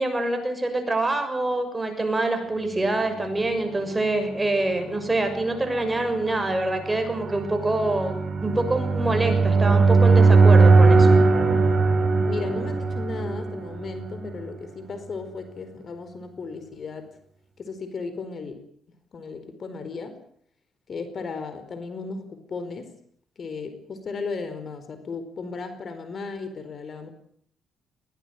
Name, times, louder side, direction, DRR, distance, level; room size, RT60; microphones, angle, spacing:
voice 1, 0.0-11.1, right 2 dB, 15° right, 6 dB, 6.7 m, -25 dB
sound 1, 3.6-14.4, right 3 dB, 40° right, 6.1 m, -20 dB
voice 2, 12.2-17.1 17.6-18.6 19.1-20.2 20.9-22.9 23.4-27.1, left 4 dB, 50° left, 10 dB, 4.6 m, -35 dB
21.0 x 19.0 x 9.4 m, 0.64 s
cardioid pair, 90°, 0 cm